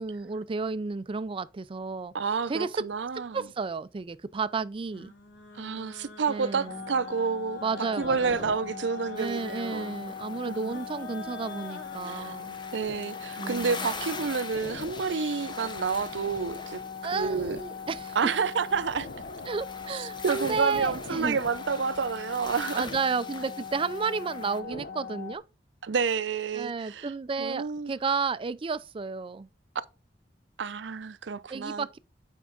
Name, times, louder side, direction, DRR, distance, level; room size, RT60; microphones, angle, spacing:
voice 1, 0.0-2.1 2.5-2.7 3.3-5.1 6.3-6.8 7.6-8.5 9.2-12.6 13.4-13.9 17.0-18.2 19.5-21.4 22.7-25.4 26.5-29.5 31.5-32.0, right 4 dB, 30° right, 0.4 m, -32 dB
voice 2, 2.1-3.5 5.5-7.6 8.0-10.0 10.4-10.8 12.0-12.4 12.7-16.8 17.1-17.6 18.2-19.1 19.9-22.9 24.6-24.8 25.8-27.1 27.4-27.9 30.6-31.9, right 5 dB, 80° right, 0.6 m, -29 dB
sound 1, 4.9-12.0, left 1 dB, 90° left, 1.6 m, -47 dB
sound 2, 6.7-25.4, left 5 dB, 55° left, 0.7 m, -40 dB
sound 3, 9.2-24.6, left 3 dB, 25° left, 0.9 m, -44 dB
8.6 x 4.6 x 3.9 m
head